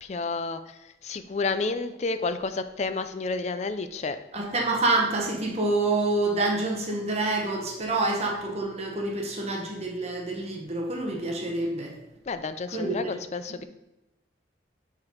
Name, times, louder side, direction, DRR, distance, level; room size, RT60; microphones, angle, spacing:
voice 1, 0.0-0.6 1.0-4.2 11.7-11.8 12.3-13.6, left 3 dB, 40° left, 10 dB, 0.4 m, -30 dB
voice 2, 4.3-11.9 12.7-13.2, right 2 dB, 35° right, 0 dB, 1.1 m, -27 dB
5.6 x 4.9 x 4.6 m, 0.96 s
head